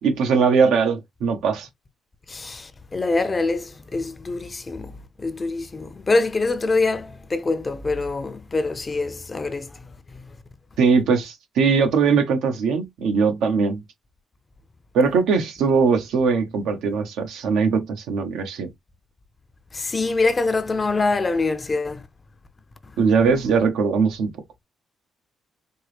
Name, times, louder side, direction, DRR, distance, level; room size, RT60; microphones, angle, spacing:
voice 1, 0.0-1.7 10.8-13.8 14.9-18.7 23.0-24.3, right 5 dB, 85° right, 1.0 m, -20 dB
voice 2, 2.3-4.9 5.2-9.7 10.1-10.2 19.7-22.0, left 3 dB, 30° left, 0.5 m, -24 dB
4.4 x 2.1 x 3.2 m
cardioid pair, 90°, 0 cm